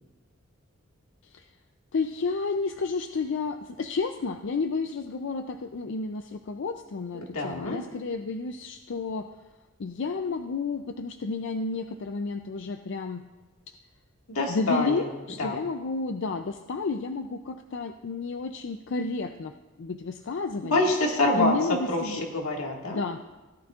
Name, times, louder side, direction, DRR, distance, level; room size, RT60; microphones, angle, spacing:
voice 1, 1.9-9.3 9.8-13.2 13.7-13.8 14.5-19.5 19.8-20.7 21.4-22.2 22.9-23.2, left 4 dB, 55° left, 6 dB, 0.4 m, -31 dB
voice 2, 7.3-7.8 14.3-15.1 15.4-15.6 20.6-21.5 21.9-23.0, left 2 dB, 85° left, 0 dB, 1.8 m, -26 dB
17.0 x 11.5 x 2.4 m, 1.2 s
head